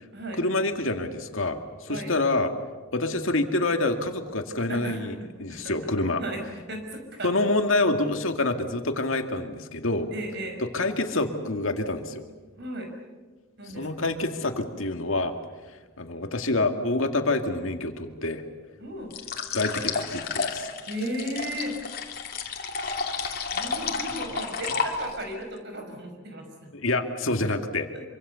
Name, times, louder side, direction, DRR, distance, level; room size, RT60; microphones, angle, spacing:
voice 1, 0.4-2.5 2.9-6.2 7.2-10.1 10.7-12.2 13.8-15.4 16.0-18.4 19.5-20.7 26.7-27.9, left 2 dB, 80° left, 6 dB, 2.1 m, -27 dB
voice 2, 4.7-5.0 5.5-5.8 6.2-6.4 6.7-7.3 10.1-10.6 12.5-12.9 13.6-14.1 18.8-19.1 20.9-21.8 23.5-26.7 27.9-28.0, right 1 dB, 55° right, 4 dB, 5.5 m, -35 dB
sound 1, 19.1-25.3, left 5 dB, 50° left, 2.8 m, -31 dB
26.0 x 25.0 x 7.0 m, 1.3 s
head